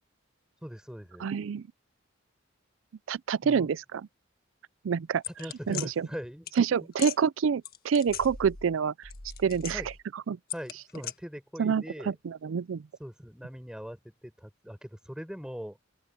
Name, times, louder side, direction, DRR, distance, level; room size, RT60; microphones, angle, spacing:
voice 1, 0.6-1.3 3.4-3.7 5.3-6.9 9.7-9.9 10.5-12.1 13.0-15.8, equal, 5° right, 5.1 m, -41 dB
voice 2, 1.2-1.6 3.1-4.0 4.8-5.2 5.7-6.1 6.6-9.1 9.4-9.8 10.3-10.4 11.6-12.8, right 6 dB, 85° right, 0.4 m, -27 dB
sound 1, 5.2-5.9 6.5-6.6 6.9-7.2 7.6-8.7 9.0-10.0 10.5-11.1, left 8 dB, 50° left, 1.6 m, -38 dB
open air
head